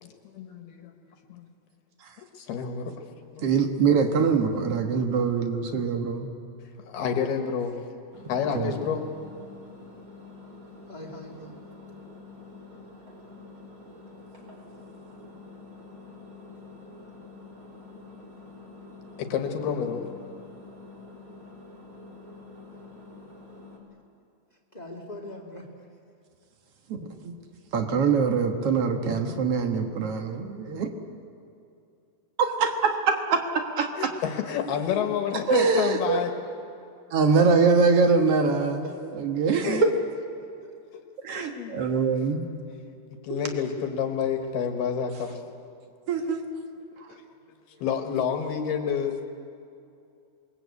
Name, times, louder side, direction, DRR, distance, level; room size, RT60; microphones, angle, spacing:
voice 1, 0.0-0.9 1.3-1.5 2.2-2.9 3.3-3.5 6.9-7.8 8.3-9.0 11.1-11.2 19.2-20.1 34.0-36.3 39.8-39.9 41.3-41.7 43.2-45.4 47.8-49.2, left 7 dB, 70° left, 5 dB, 3.2 m, -29 dB
voice 2, 3.4-6.3 8.5-8.8 26.9-27.3 27.7-30.9 32.4-34.1 35.5-36.2 37.1-38.8 39.2-39.9 41.2-42.4 43.3-43.4 45.4-45.5 46.1-46.4 47.0-47.1, right 5 dB, 75° right, 5 dB, 1.3 m, -24 dB
Engine, 8.1-23.8, left 3 dB, 30° right, 4.4 m, -47 dB
voice 3, 10.9-11.5 22.7-22.8 24.7-25.7 38.8-38.9 40.6-40.7 47.3-47.8, equal, 20° left, 2 dB, 1.1 m, -42 dB
28.0 x 21.5 x 8.3 m, 2.5 s
omnidirectional pair, 5.1 m